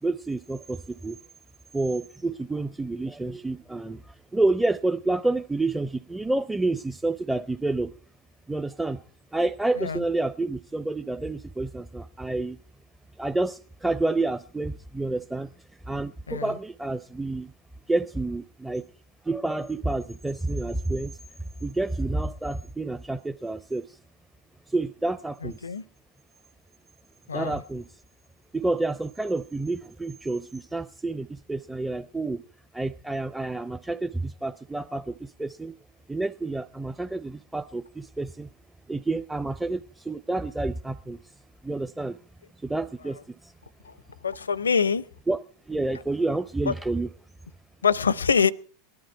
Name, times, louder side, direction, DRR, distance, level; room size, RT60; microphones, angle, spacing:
voice 1, 0.0-1.2 1.7-7.9 8.5-9.0 9.3-12.6 13.2-15.5 15.9-17.5 17.9-18.8 19.2-21.2 21.6-24.0 24.7-25.6 27.3-27.9 28.5-32.4 32.7-35.8 36.1-38.5 38.9-41.2 41.6-42.2 42.6-43.5 45.3-47.1, right 2 dB, 5° right, 0.6 m, -29 dB
voice 2, 25.4-25.8 27.3-27.6 43.8-43.9 44.2-45.0 46.7-46.8 47.8-48.5, left 6 dB, 90° left, 0.6 m, -24 dB
19.5 x 11.5 x 4.4 m
hypercardioid pair, 90°, 0 cm